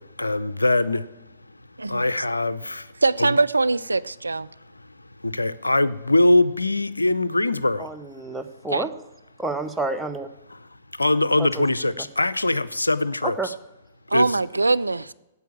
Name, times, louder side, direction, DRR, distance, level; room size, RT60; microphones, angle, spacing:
voice 1, 0.2-1.0 1.9-2.8 3.2-3.4 5.2-7.9 11.0-13.5 14.1-14.4, left 2 dB, 85° left, 0.5 m, -22 dB
voice 2, 3.0-4.5 8.7-8.8 14.1-15.1, right 3 dB, 85° right, 0.3 m, -22 dB
voice 3, 7.8-8.9 9.4-10.3 11.4-11.6 13.4-13.5, right 3 dB, 5° right, 0.9 m, -29 dB
9.2 x 8.3 x 8.4 m
figure-of-eight pair, 110°, 0 cm